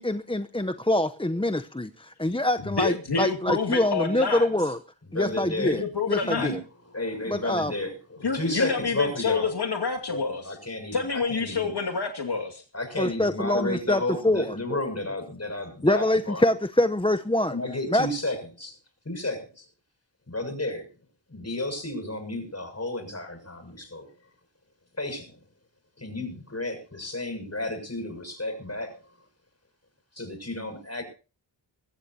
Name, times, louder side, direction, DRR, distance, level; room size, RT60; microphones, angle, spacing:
voice 1, 0.0-4.8 5.1-6.6 7.3-7.7 13.0-14.8 15.8-17.6 17.9-18.1, left 1 dB, 10° left, 0.8 m, -25 dB
voice 2, 2.8-4.5 5.6-6.5 8.2-10.5 10.9-12.6, left 4 dB, 60° left, 2.5 m, -28 dB
voice 3, 5.0-5.8 6.2-6.6 6.9-9.5 10.1-11.7 12.7-16.4 17.5-18.8 19.0-19.7 20.3-20.9 21.3-24.1 25.0-25.4 26.0-29.0 30.1-31.0, left 1 dB, 35° left, 7.0 m, -32 dB
22.5 x 15.5 x 2.8 m
wide cardioid pair, 75°, 44 cm